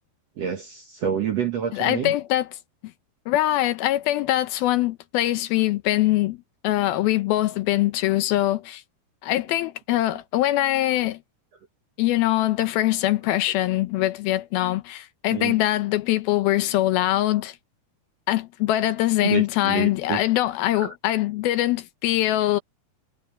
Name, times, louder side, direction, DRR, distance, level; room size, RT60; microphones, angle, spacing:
voice 1, 0.4-2.1 15.3-15.6 19.2-20.2 20.7-20.9, right 8 dB, 60° right, 1.7 m, -28 dB
voice 2, 1.7-2.5 3.3-6.4 6.6-8.8 9.2-11.2 12.0-17.6 18.3-22.6, left 15 dB, 75° left, 2.6 m, -23 dB
omnidirectional pair, 4.6 m